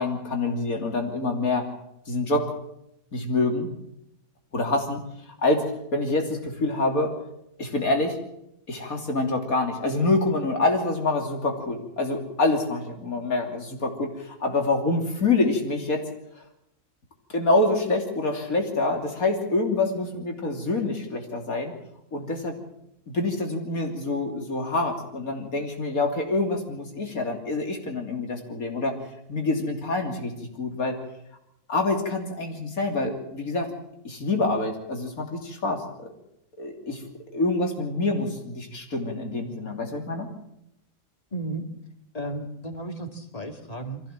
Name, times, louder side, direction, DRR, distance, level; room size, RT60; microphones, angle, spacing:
voice 1, 0.0-1.6 2.1-2.5 3.1-3.7 4.5-5.0 5.4-5.6 5.9-7.1 7.6-8.2 8.7-16.0 17.3-21.7 22.1-22.5 23.1-28.9 29.3-30.3 30.6-31.0 31.7-33.7 34.0-36.1 36.6-37.0 37.3-40.3, left 2 dB, 80° left, 3 dB, 3.5 m, -26 dB
voice 2, 41.3-41.6 42.1-44.0, right 2 dB, 25° left, 5 dB, 2.3 m, -34 dB
23.5 x 15.5 x 7.4 m, 0.80 s
omnidirectional pair, 1.5 m